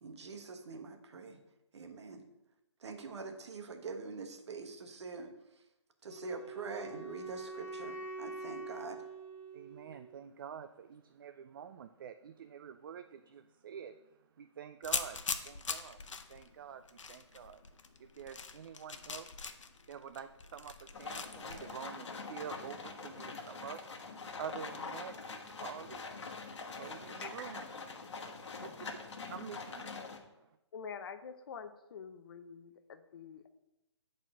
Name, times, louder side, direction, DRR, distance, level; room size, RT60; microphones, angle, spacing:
voice 1, 0.0-1.4 1.7-2.2 2.8-5.3 6.0-9.0, right 4 dB, 65° right, 6 dB, 1.3 m, -44 dB
Wind instrument woodwind instrument, 6.1-10.2, right 3 dB, 5° right, 1.6 m, -45 dB
voice 2, 9.5-13.9 14.4-15.2 15.5-16.0 16.3-16.8 17.1-17.6 18.0-19.3 19.9-23.8 24.4-26.0 26.8-27.6 28.6-29.0 29.3-29.9, right 8 dB, 45° right, 9 dB, 0.4 m, -47 dB
sound 1, 14.8-21.7, left 5 dB, 85° left, 0.9 m, -42 dB
sound 2, 20.9-30.2, left 4 dB, 70° left, 1.3 m, -44 dB
voice 3, 30.7-33.5, left 6 dB, 50° left, 10 dB, 0.7 m, -47 dB
8.9 x 4.2 x 6.0 m, 0.97 s
hypercardioid pair, 155°, 16 cm